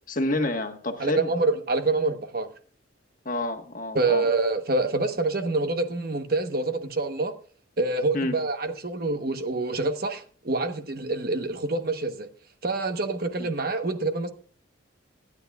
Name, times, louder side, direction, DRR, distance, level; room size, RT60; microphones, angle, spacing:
voice 1, 0.1-1.3 3.2-4.3 8.1-8.4 13.4-13.5, left 2 dB, 45° left, 1.3 m, -28 dB
voice 2, 1.0-2.5 3.9-7.3 7.8-12.3 12.6-14.3, right 3 dB, 50° right, 1.1 m, -26 dB
25.0 x 9.8 x 2.4 m
head